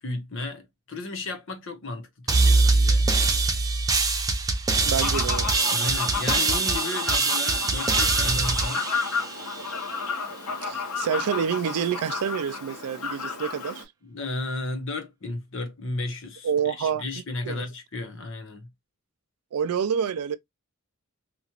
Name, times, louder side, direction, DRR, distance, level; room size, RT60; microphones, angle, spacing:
voice 1, 0.0-3.1 5.7-8.9 14.0-18.7, left 2 dB, 55° left, 0.9 m, -34 dB
sound 1, 2.3-9.8, right 3 dB, 15° right, 0.4 m, -23 dB
voice 2, 4.9-5.5 5.8-6.0 10.6-13.8 16.4-17.0 17.5-17.7 19.5-20.4, right 7 dB, 90° right, 0.4 m, -28 dB
Fowl, 5.0-13.8, left 5 dB, 85° left, 1.1 m, -32 dB
3.0 x 2.4 x 2.8 m
head